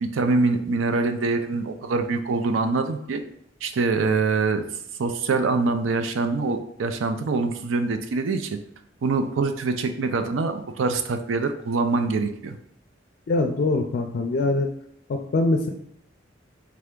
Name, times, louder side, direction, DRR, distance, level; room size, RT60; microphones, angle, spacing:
voice 1, 0.0-3.2 3.6-4.7 5.0-8.6 9.0-12.6, right 3 dB, 85° right, 8 dB, 0.4 m, -24 dB
voice 2, 13.3-14.7 15.1-15.7, left 2 dB, 55° left, 4 dB, 0.3 m, -23 dB
3.5 x 3.3 x 3.7 m, 0.72 s
head